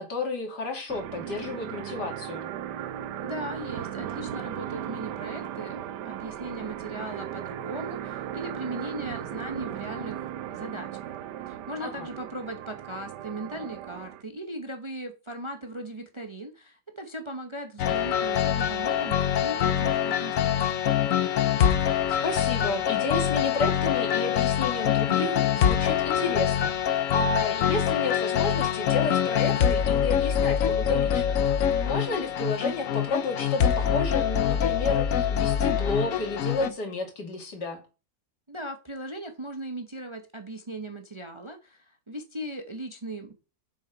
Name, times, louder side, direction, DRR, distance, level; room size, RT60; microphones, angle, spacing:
voice 1, 0.0-2.5 11.8-12.1 22.2-26.7 27.1-37.8, left 3 dB, 75° left, 3.0 m, -31 dB
sound 1, 0.9-14.2, right 10 dB, 90° right, 1.4 m, -36 dB
voice 2, 3.2-5.8 6.0-11.0 11.5-20.7 38.5-43.3, right 1 dB, 25° right, 0.8 m, -38 dB
sound 2, 17.8-36.7, left 9 dB, 60° left, 1.1 m, -25 dB
7.3 x 7.2 x 5.2 m
omnidirectional pair, 1.8 m